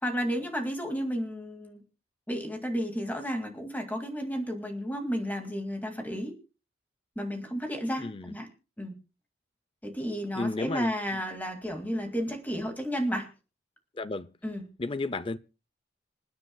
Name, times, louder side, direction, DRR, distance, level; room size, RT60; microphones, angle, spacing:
voice 1, 0.0-1.8 2.3-6.4 7.2-8.5 8.8-9.0 9.8-13.3 14.4-14.6, equal, 10° left, 2.2 m, -32 dB
voice 2, 8.0-8.4 10.3-11.2 13.9-14.3 14.8-15.4, left 2 dB, 25° left, 0.5 m, -33 dB
27.0 x 9.6 x 2.3 m
head